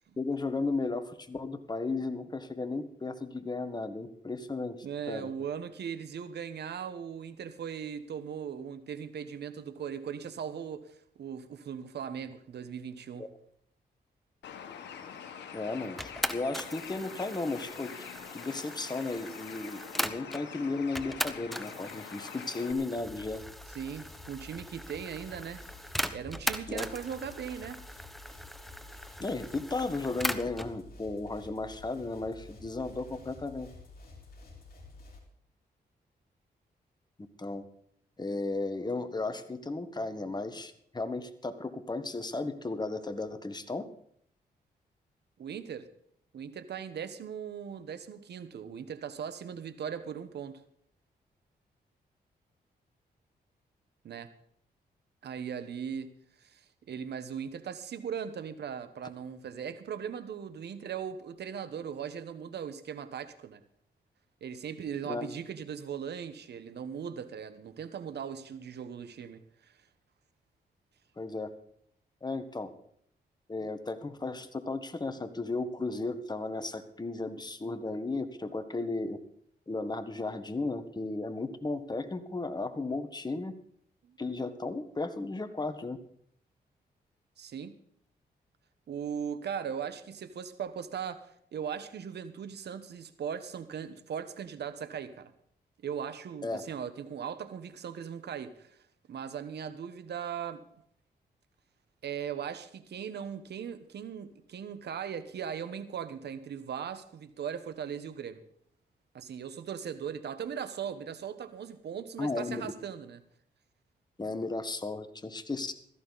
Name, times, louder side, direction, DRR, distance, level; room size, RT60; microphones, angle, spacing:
voice 1, 0.2-5.3 13.2-13.3 15.5-17.9 18.3-23.4 26.7-26.9 29.2-33.7 37.4-37.6 38.2-43.9 65.1-65.3 71.2-71.5 72.2-72.7 73.5-79.2 79.7-83.5 84.2-86.0 96.4-96.6 112.2-112.7 114.2-115.7, left 3 dB, 25° left, 1.5 m, -35 dB
voice 2, 4.8-13.3 23.7-25.6 26.1-27.8 45.4-45.9 46.3-50.6 54.0-54.3 55.2-56.1 56.4-63.6 64.4-69.7 84.0-84.2 87.4-87.8 88.9-95.3 95.8-98.8 99.1-100.6 102.0-108.4 109.1-113.2, right 8 dB, 75° right, 1.3 m, -39 dB
Bird, 14.4-22.7, left 7 dB, 90° left, 1.4 m, -45 dB
sound 1, 16.0-20.5 21.0-30.7, equal, ahead, 1.0 m, -39 dB
sound 2, 23.0-35.2, left 3 dB, 60° left, 4.2 m, -51 dB
16.5 x 14.0 x 4.1 m
cardioid pair, 65°, 18 cm